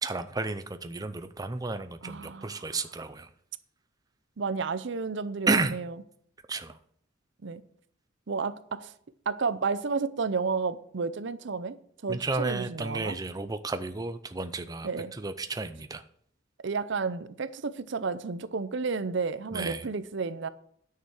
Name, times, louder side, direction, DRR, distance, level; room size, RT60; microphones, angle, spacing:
voice 1, 0.0-3.3 5.5-5.7 6.5-6.7 12.1-14.9 15.2-16.0 19.5-19.8, right 3 dB, 20° right, 0.5 m, -32 dB
voice 2, 2.0-2.8 4.4-6.0 7.4-7.6 8.3-8.9 9.3-11.8 12.0-13.2 14.8-15.1 16.6-20.5, right 4 dB, 65° right, 0.6 m, -31 dB
10.0 x 6.7 x 6.4 m
head